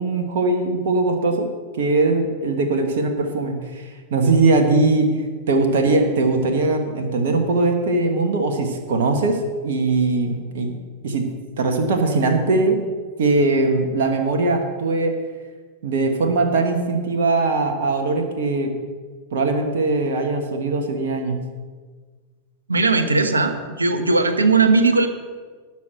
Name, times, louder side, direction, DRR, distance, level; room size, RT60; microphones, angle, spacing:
voice 1, 0.0-1.5 1.8-5.2 5.5-10.8 11.0-11.3 11.6-12.8 13.2-15.2 15.8-18.7 19.3-21.4, right 3 dB, 55° right, 4 dB, 1.5 m, -20 dB
voice 2, 22.7-25.1, right 3 dB, 75° right, 8 dB, 1.1 m, -18 dB
12.0 x 5.9 x 8.0 m, 1.5 s
figure-of-eight pair, 90°, 0 cm